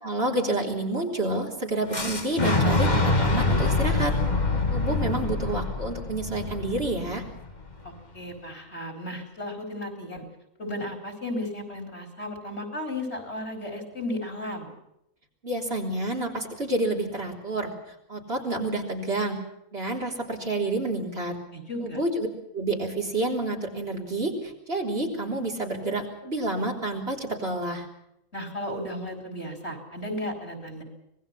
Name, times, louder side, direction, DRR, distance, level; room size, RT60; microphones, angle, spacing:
voice 1, 0.0-4.2 4.7-7.2 15.4-17.7 18.1-19.4 19.7-21.4 21.8-22.3 22.5-27.9, right 2 dB, 50° right, 0 dB, 4.1 m, -29 dB
Boom, 1.9-7.8, left 2 dB, 35° left, 2.2 m, -25 dB
voice 2, 7.8-10.2 10.6-14.7 21.5-22.0 28.3-30.8, left 1 dB, 50° left, 4 dB, 4.7 m, -34 dB
25.5 x 20.0 x 5.8 m, 0.79 s
omnidirectional pair, 1.4 m